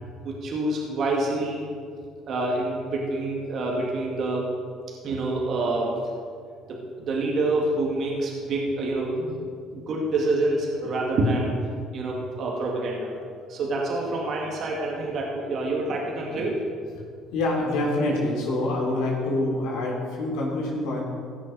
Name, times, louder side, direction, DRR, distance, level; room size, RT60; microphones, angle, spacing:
voice 1, 0.2-1.7 2.3-4.5 5.0-6.0 6.7-9.4 9.7-11.5 11.9-13.1 13.5-16.6, right 2 dB, 55° right, -2 dB, 2.2 m, -27 dB
voice 2, 17.3-21.0, left 2 dB, 75° left, -3 dB, 3.5 m, -26 dB
16.5 x 6.3 x 5.3 m, 2.2 s
supercardioid pair, 75°, 0 cm